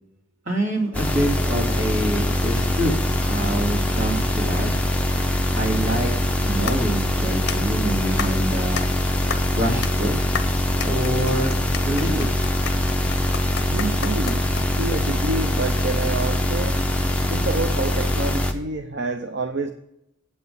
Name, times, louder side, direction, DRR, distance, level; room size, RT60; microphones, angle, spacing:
voice 1, 0.5-2.9 3.3-4.7 5.5-6.1 6.4-8.9 9.5-10.1 10.8-11.6 11.8-12.3, right 1 dB, 75° right, 0 dB, 2.8 m, -26 dB
sound 1, 0.9-18.5, left 1 dB, 5° left, 0.8 m, -23 dB
sound 2, 6.7-15.0, left 6 dB, 55° left, 0.7 m, -34 dB
voice 2, 13.7-14.5 14.8-16.8 17.3-19.7, right 3 dB, 60° right, 6 dB, 0.7 m, -28 dB
8.3 x 8.2 x 5.4 m, 0.84 s
head